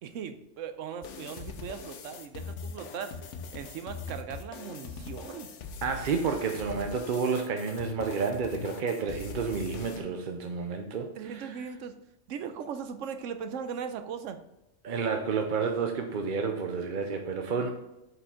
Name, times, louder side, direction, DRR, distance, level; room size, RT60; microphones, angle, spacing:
voice 1, 0.0-3.1 3.5-5.5 11.2-12.0 12.3-14.4, right 7 dB, 85° right, 9 dB, 1.0 m, -38 dB
sound 1, 1.0-10.0, left 5 dB, 75° left, 1.1 m, -41 dB
voice 2, 5.8-11.5 14.8-17.7, right 5 dB, 50° right, 4 dB, 0.7 m, -30 dB
8.0 x 5.0 x 3.6 m, 0.93 s
omnidirectional pair, 1.3 m